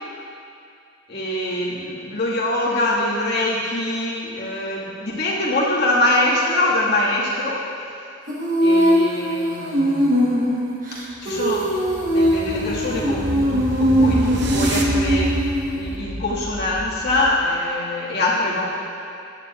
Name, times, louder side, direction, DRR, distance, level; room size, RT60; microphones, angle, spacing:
voice 1, 1.1-7.7 8.6-10.5 11.2-11.7 12.0-15.3 15.7-18.7, left 1 dB, 50° left, -7 dB, 2.0 m, -24 dB
Female singing, 8.3-16.0, equal, 40° right, 1.3 m, -21 dB
sound 1, 11.2-17.5, right 1 dB, 55° right, 0.8 m, -29 dB
14.0 x 9.8 x 2.5 m, 2.6 s
head